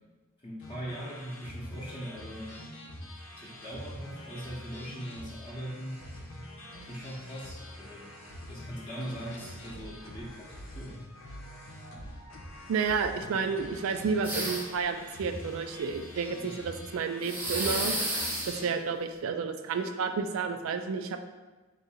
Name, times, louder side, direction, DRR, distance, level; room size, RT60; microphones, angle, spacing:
voice 1, 0.4-2.6 3.4-6.0 6.8-8.1 8.5-11.0 16.4-16.6, equal, 25° left, -7 dB, 0.7 m, -41 dB
sound 1, 0.6-18.7, left 1 dB, 75° left, 0.7 m, -45 dB
voice 2, 12.7-18.0 18.4-21.2, right 5 dB, 80° right, 8 dB, 0.4 m, -31 dB
sound 2, 14.2-14.8 17.2-18.6, right 1 dB, 10° right, 0.7 m, -31 dB
3.6 x 2.7 x 4.2 m, 1.2 s
head